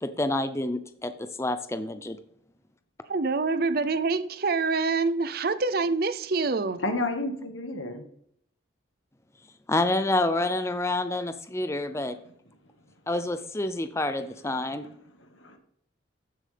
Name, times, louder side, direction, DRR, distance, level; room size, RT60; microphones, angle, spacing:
voice 1, 0.0-2.2 9.7-12.2 13.1-14.9, left 2 dB, 15° left, 0.5 m, -28 dB
voice 2, 3.1-6.8, right 3 dB, 50° right, 0.6 m, -26 dB
voice 3, 6.8-8.0 14.6-14.9 15.2-15.6, left 2 dB, 85° left, 1.7 m, -32 dB
14.0 x 7.5 x 3.4 m
head